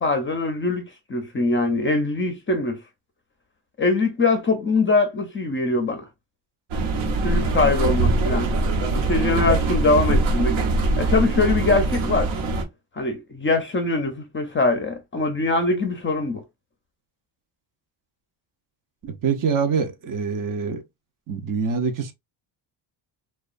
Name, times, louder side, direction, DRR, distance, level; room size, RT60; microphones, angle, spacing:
voice 1, 0.0-2.8 3.8-6.0 7.2-8.5 8.9-10.6 11.0-12.3 13.0-16.4, left 3 dB, 25° left, 0.5 m, -22 dB
sound 1, 6.7-12.6, right 2 dB, 80° right, 0.8 m, -22 dB
voice 2, 19.2-20.8 21.3-22.1, right 5 dB, 45° right, 0.5 m, -24 dB
2.8 x 2.2 x 2.4 m
cardioid pair, 140°, 48 cm